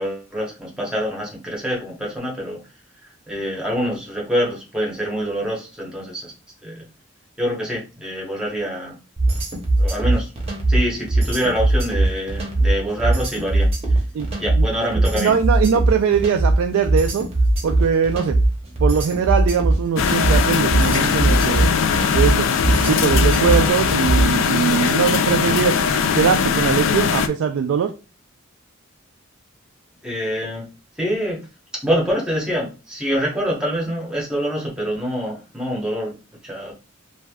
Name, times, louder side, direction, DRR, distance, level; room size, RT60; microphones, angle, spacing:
voice 1, 0.0-2.6 3.0-6.3 6.6-6.9 7.4-9.0 9.8-10.3 10.7-14.0 14.4-15.3 30.0-30.7 31.0-31.4 31.8-36.1 36.4-36.7, equal, 5° right, -3 dB, 1.0 m, -25 dB
sound 1, 9.2-24.4, right 2 dB, 30° right, 0.8 m, -19 dB
voice 2, 15.0-17.3 17.6-18.4 18.8-21.7 22.1-25.8 26.1-27.9, right 6 dB, 80° right, 6 dB, 0.3 m, -21 dB
sound 2, 20.0-27.3, left 6 dB, 65° left, 0.3 m, -20 dB
3.3 x 2.6 x 2.3 m, 0.31 s
head